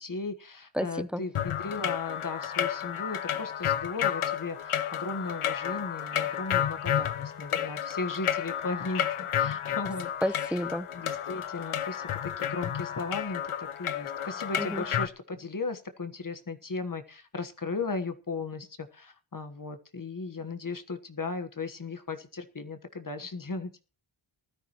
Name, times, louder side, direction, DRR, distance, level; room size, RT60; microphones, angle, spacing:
voice 1, 0.0-10.1 10.9-23.8, left 3 dB, 40° left, 8 dB, 1.4 m, -36 dB
voice 2, 0.7-1.2 10.2-10.9 14.6-14.9, equal, ahead, 14 dB, 0.7 m, -31 dB
sound 1, 1.3-15.1, left 10 dB, 90° left, 0.8 m, -31 dB
19.5 x 13.0 x 3.0 m, 0.35 s
wide cardioid pair, 105°, 49 cm